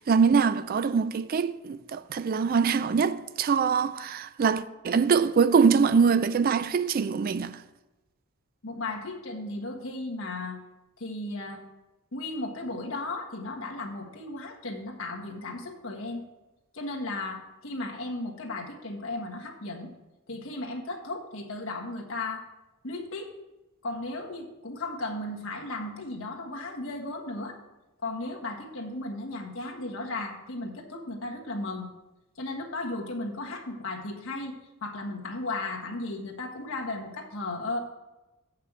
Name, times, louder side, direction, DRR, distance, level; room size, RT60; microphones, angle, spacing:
voice 1, 0.0-7.5, right 5 dB, 45° right, 0.4 m, -23 dB
voice 2, 8.6-10.6 11.0-11.6 12.1-16.2 16.7-19.9 20.3-22.4 22.8-23.3 23.8-27.6 28.0-31.9 32.4-34.5 34.8-37.8, left 2 dB, 65° left, 1.5 m, -35 dB
8.0 x 5.7 x 7.3 m
head